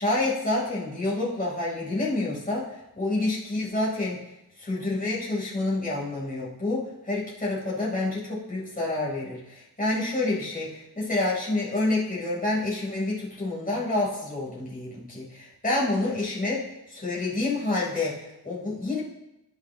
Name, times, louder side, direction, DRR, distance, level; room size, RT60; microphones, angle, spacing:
voice 1, 0.0-2.6 3.0-4.2 4.6-19.0, left 2 dB, 20° left, -6 dB, 4.2 m, -28 dB
16.5 x 6.2 x 3.1 m, 0.90 s
wide cardioid pair, 95°, 39 cm